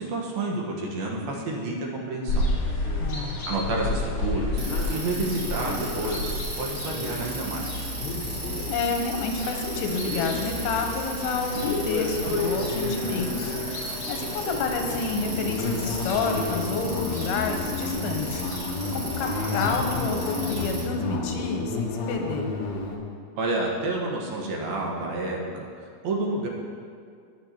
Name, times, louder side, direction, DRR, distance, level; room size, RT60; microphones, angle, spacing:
voice 1, 0.0-2.5 3.5-7.7 23.4-25.7 26.0-26.5, right 2 dB, 75° right, -1 dB, 3.1 m, -29 dB
sound 1, 2.3-20.7, left 2 dB, 50° left, 1.8 m, -32 dB
voice 2, 3.0-3.4 8.7-18.5 18.9-22.5, left 4 dB, 90° left, 3 dB, 2.8 m, -29 dB
Bicycle, 4.6-20.8, right 2 dB, 35° right, 2.2 m, -37 dB
sound 2, 12.2-23.0, left 3 dB, 70° left, 1.6 m, -32 dB
19.0 x 7.0 x 3.0 m, 2.2 s
omnidirectional pair, 4.4 m